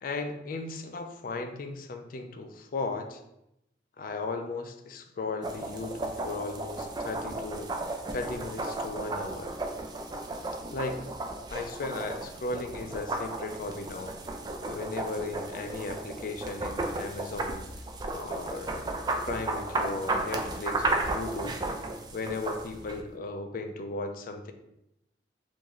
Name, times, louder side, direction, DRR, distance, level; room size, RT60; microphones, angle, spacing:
voice 1, 0.0-3.2 4.0-7.7 8.1-9.5 10.7-11.1 11.5-14.1 14.7-17.6 18.1-18.8 19.2-21.6 22.1-24.5, left 3 dB, 50° left, 6 dB, 0.4 m, -36 dB
sound 1, 5.4-23.0, right 2 dB, 25° right, 0.3 m, -34 dB
3.0 x 2.6 x 3.8 m, 0.84 s
head